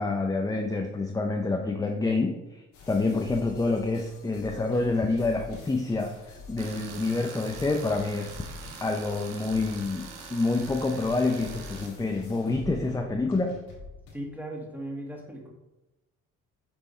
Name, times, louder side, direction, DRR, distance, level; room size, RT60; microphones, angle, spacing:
voice 1, 0.0-8.4 8.8-13.6, left 3 dB, 10° left, 3 dB, 0.6 m, -27 dB
sound 1, 2.7-14.1, left 4 dB, 80° left, 2.1 m, -46 dB
Tools, 6.6-11.9, right 6 dB, 85° right, 1.0 m, -44 dB
voice 2, 14.1-15.5, right 1 dB, 5° right, -1 dB, 1.8 m, -37 dB
7.3 x 3.5 x 4.3 m, 1.0 s
supercardioid pair, 75°, 32 cm